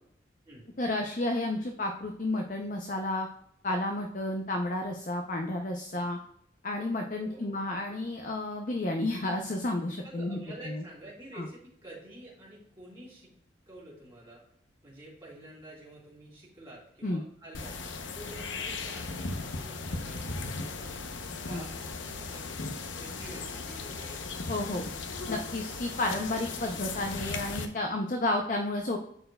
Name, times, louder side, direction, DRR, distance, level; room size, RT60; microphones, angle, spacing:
voice 1, 0.8-3.3 3.6-6.2 6.6-10.4 10.7-10.8 11.3-11.5 17.0-17.2 21.5-21.6 24.5-24.8 25.3-29.0, left 2 dB, 45° left, 3 dB, 0.5 m, -31 dB
voice 2, 7.0-7.5 10.0-13.3 13.7-14.4 14.8-17.7 18.1-21.0 21.4-22.6 23.0-24.2, right 1 dB, 25° right, -8 dB, 2.6 m, -48 dB
sound 1, 17.5-27.7, left 3 dB, 85° left, 0.7 m, -37 dB
11.5 x 4.5 x 2.2 m, 0.72 s
head